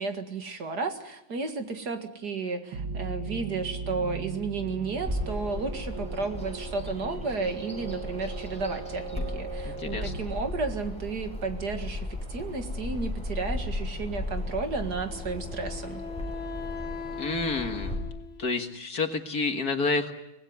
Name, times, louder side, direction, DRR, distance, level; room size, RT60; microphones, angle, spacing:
voice 1, 0.0-16.0, right 4 dB, 55° right, 7 dB, 2.4 m, -33 dB
sound 1, 2.7-11.4, right 5 dB, 80° right, 2.4 m, -38 dB
Bird vocalization bird call bird song, 5.0-17.9, left 1 dB, 5° left, 5.7 m, -36 dB
voice 2, 9.6-10.1 17.2-17.9 18.4-20.1, left 3 dB, 50° left, 6 dB, 2.1 m, -29 dB
Wind instrument woodwind instrument, 15.1-18.7, left 5 dB, 90° left, 3.4 m, -39 dB
24.5 x 19.5 x 9.5 m, 0.90 s
omnidirectional pair, 2.2 m